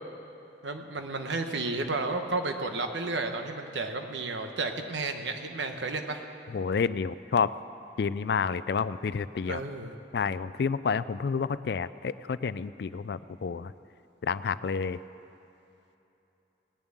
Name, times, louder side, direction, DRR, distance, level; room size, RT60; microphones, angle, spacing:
voice 1, 0.6-6.2 9.4-9.9, right 3 dB, 75° right, 5 dB, 1.1 m, -32 dB
voice 2, 6.5-7.5 8.0-9.6 10.1-13.7 14.2-15.0, left 5 dB, 60° left, 16 dB, 0.3 m, -29 dB
19.0 x 7.1 x 9.0 m, 2.9 s
head